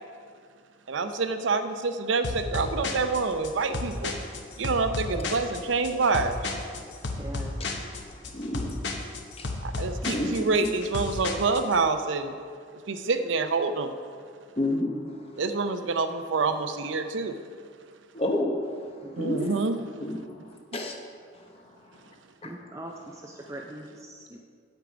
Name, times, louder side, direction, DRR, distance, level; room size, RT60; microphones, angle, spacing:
voice 1, 0.9-4.1 4.6-6.4 9.6-12.3 12.9-13.9 15.4-17.4 19.2-19.7, right 4 dB, 70° right, 9 dB, 0.6 m, -27 dB
sound 1, 2.2-11.8, left 3 dB, 60° left, 0.9 m, -33 dB
voice 2, 7.1-7.6 19.0-19.6 22.4-24.4, right 1 dB, 15° right, 1 dB, 0.4 m, -42 dB
voice 3, 8.3-8.7 9.4-9.5 10.0-10.3 10.6-10.7 14.6-15.1 18.1-18.7 19.2-19.5 20.0-20.9 22.4-22.5, left 1 dB, 30° left, 2 dB, 0.9 m, -29 dB
8.2 x 8.0 x 5.0 m, 2.1 s
head